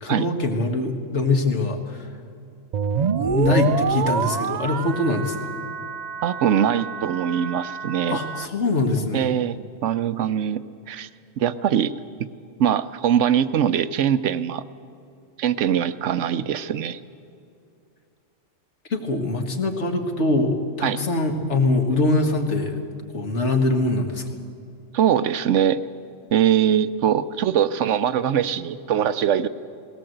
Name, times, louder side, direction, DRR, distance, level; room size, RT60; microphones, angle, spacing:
voice 1, 0.0-2.1 3.2-5.5 8.1-9.3 18.9-22.8 23.1-24.3, left 2 dB, 65° left, 4 dB, 1.9 m, -23 dB
sound 1, 2.7-8.5, right 6 dB, 55° right, 0.5 m, -27 dB
voice 2, 6.2-8.2 9.1-10.6 10.9-11.1 11.4-11.9 12.6-14.6 15.4-17.0 20.8-21.0 24.9-25.8 26.3-29.5, right 9 dB, 75° right, 13 dB, 1.0 m, -22 dB
19.0 x 17.5 x 7.9 m, 2.5 s
omnidirectional pair, 1.3 m